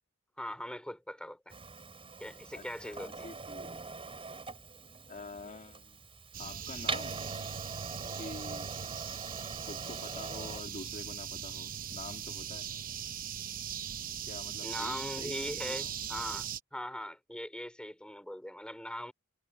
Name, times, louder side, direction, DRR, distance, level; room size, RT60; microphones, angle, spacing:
voice 1, 0.4-1.5 2.2-3.3 9.3-9.5 14.6-19.1, left 1 dB, 5° left, 3.7 m, -41 dB
Printer, 1.5-10.6, right 4 dB, 25° right, 3.8 m, -43 dB
voice 2, 2.5-3.8 5.1-6.0 6.4-7.2 8.1-8.7 9.6-12.7 14.2-16.0, left 3 dB, 35° left, 2.6 m, -47 dB
sound 1, 6.3-16.6, right 9 dB, 40° right, 0.8 m, -40 dB
head